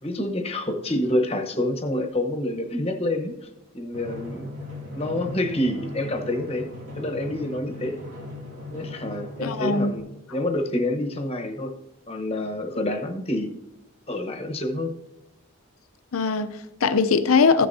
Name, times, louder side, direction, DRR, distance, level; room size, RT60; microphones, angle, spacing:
voice 1, 0.0-3.4 3.7-4.5 4.9-6.7 6.9-8.0 8.7-11.7 12.1-13.6 14.1-15.0, left 1 dB, 30° left, 1.0 m, -27 dB
Drum, 3.9-10.0, left 1 dB, 90° right, 2.4 m, -38 dB
voice 2, 9.4-9.9 16.1-17.7, left 5 dB, 85° left, 0.6 m, -21 dB
16.0 x 6.9 x 2.7 m
head